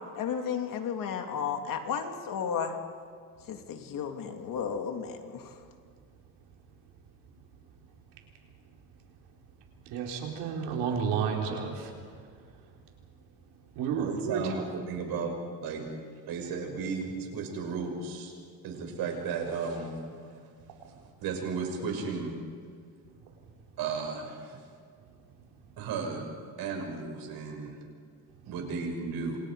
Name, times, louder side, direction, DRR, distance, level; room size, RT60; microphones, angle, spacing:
voice 1, 0.1-2.8 3.5-5.5, left 7 dB, 60° left, 4 dB, 2.8 m, -33 dB
voice 2, 9.9-11.9 13.8-14.5, right 6 dB, 90° right, 0 dB, 4.5 m, -31 dB
voice 3, 14.0-15.3 15.6-15.8 16.3-18.3 18.6-20.5 20.8-22.3 23.8-24.6 25.8-26.3 26.6-27.8 28.5-29.4, right 5 dB, 70° right, 2 dB, 6.4 m, -34 dB
29.0 x 26.5 x 5.1 m, 2.1 s
cardioid pair, 130°, 38 cm